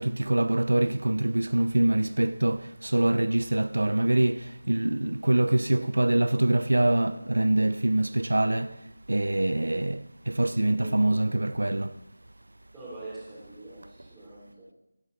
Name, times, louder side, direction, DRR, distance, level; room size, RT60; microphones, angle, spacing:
voice 1, 0.0-8.8 9.1-12.0, right 1 dB, 75° right, 0.6 m, -24 dB
voice 2, 10.8-11.2 12.7-14.7, right 2 dB, 5° right, 3.4 m, -44 dB
16.5 x 10.5 x 3.9 m
figure-of-eight pair, 165°, 0 cm